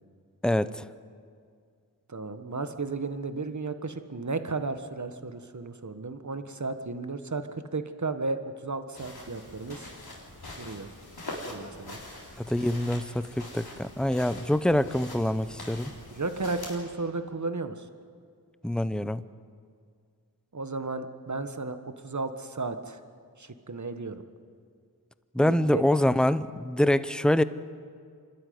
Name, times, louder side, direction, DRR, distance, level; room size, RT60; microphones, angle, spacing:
voice 1, 0.4-0.9 12.4-15.9 18.6-19.2 25.3-27.4, left 1 dB, ahead, 14 dB, 0.7 m, -25 dB
voice 2, 2.1-9.9 10.6-10.9 11.5-12.0 16.1-17.8 20.5-23.0 23.4-24.2 25.4-25.8, right 3 dB, 50° right, 9 dB, 1.5 m, -34 dB
sound 1, 8.9-16.8, left 2 dB, 80° left, 3.9 m, -43 dB
26.5 x 12.5 x 9.5 m, 2.2 s
wide cardioid pair, 45°, 37 cm